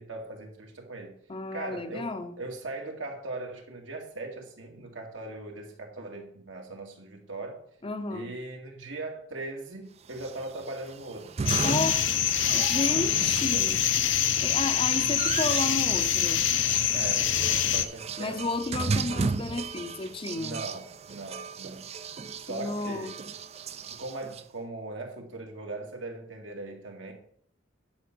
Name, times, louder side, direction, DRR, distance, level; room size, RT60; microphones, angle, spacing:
voice 1, 0.0-1.1 1.5-7.6 8.1-11.3 13.1-13.7 16.9-18.4 20.3-21.9 22.3-23.1 23.9-27.1, right 2 dB, 75° right, 2.3 m, -39 dB
voice 2, 1.3-2.3 7.8-8.3 11.6-12.1 12.5-13.8 14.4-16.4 18.2-20.6 22.5-23.1, left 3 dB, 30° left, 0.6 m, -32 dB
sound 1, 10.1-24.4, right 5 dB, 35° right, 0.4 m, -35 dB
sound 2, 11.5-17.9, left 10 dB, 80° left, 0.7 m, -25 dB
10.5 x 5.2 x 6.1 m
head